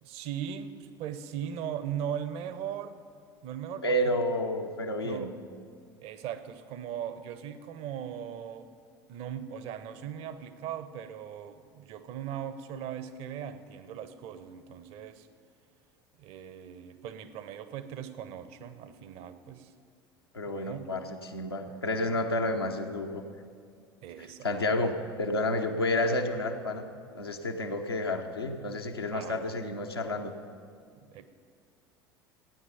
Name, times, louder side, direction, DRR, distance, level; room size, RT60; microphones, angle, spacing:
voice 1, 0.0-3.0 3.4-4.2 5.0-5.4 6.0-8.7 9.1-15.3 16.2-19.7 20.5-20.9 21.2-21.3 21.7-22.2 24.0-24.5 24.7-24.8 29.1-29.5 31.1-31.3, right 9 dB, 50° right, 12 dB, 0.9 m, -39 dB
voice 2, 3.8-5.3 20.3-23.2 24.4-26.9 27.1-30.3, left 1 dB, 85° left, 2 dB, 0.8 m, -30 dB
15.0 x 9.6 x 5.6 m, 2.2 s
figure-of-eight pair, 65°, 13 cm